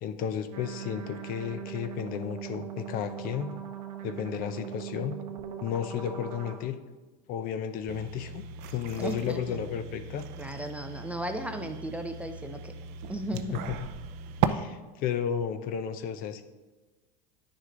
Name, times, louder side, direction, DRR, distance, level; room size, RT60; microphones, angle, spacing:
voice 1, 0.0-3.5 4.0-5.2 5.6-6.8 7.3-8.4 8.7-10.2 13.5-13.8 14.4-16.4, left 8 dB, 45° left, 11 dB, 0.7 m, -33 dB
sound 1, 0.5-6.6, right 9 dB, 85° right, 1.1 m, -40 dB
sound 2, 7.9-14.5, right 9 dB, 50° right, 0.6 m, -36 dB
voice 2, 9.0-9.6 10.4-12.7 13.1-13.8, right 1 dB, 5° right, 6 dB, 0.5 m, -36 dB
9.2 x 6.5 x 3.8 m, 1.2 s
supercardioid pair, 120°, 21 cm